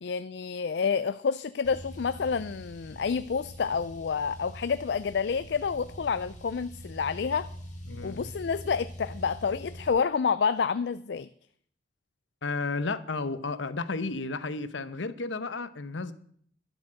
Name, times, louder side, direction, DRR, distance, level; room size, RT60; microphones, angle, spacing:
voice 1, 0.0-7.5 8.0-11.3, left 6 dB, 65° left, 14 dB, 0.4 m, -29 dB
Car, 1.6-9.9, equal, 40° left, 4.0 m, -44 dB
voice 2, 7.9-8.3 12.4-16.1, left 3 dB, 85° left, 13 dB, 0.9 m, -33 dB
12.0 x 7.8 x 7.5 m, 0.62 s
head